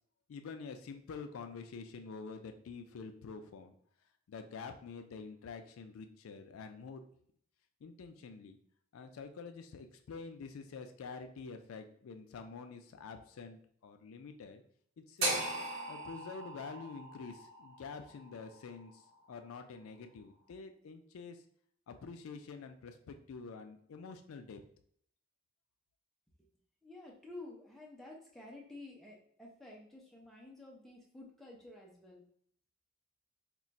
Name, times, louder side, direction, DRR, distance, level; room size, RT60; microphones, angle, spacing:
voice 1, 0.3-3.7 4.3-7.0 7.8-8.6 8.9-14.6 15.0-15.5 15.9-21.4 21.9-24.6, left 5 dB, 90° left, 7 dB, 0.4 m, -47 dB
sound 1, 15.2-19.3, right 2 dB, 75° right, 0.9 m, -39 dB
voice 2, 26.8-32.2, left 2 dB, ahead, -3 dB, 0.5 m, -51 dB
2.4 x 2.2 x 3.9 m, 0.63 s
head